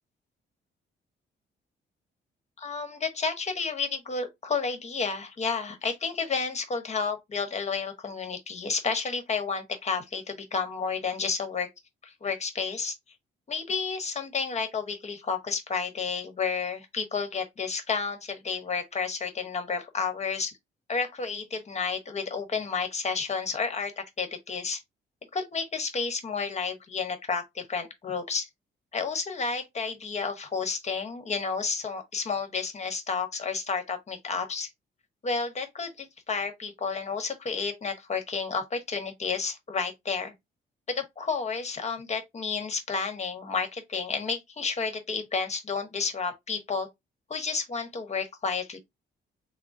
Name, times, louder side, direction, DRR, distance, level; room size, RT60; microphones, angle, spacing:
voice 1, 2.6-11.7 12.0-12.9 13.5-20.5 20.9-24.8 25.3-28.5 28.9-34.7 35.2-40.3 40.9-46.9 47.3-48.8, left 5 dB, 35° left, 1.1 m, -31 dB
3.7 x 2.0 x 3.7 m
cardioid pair, 90°, 20 cm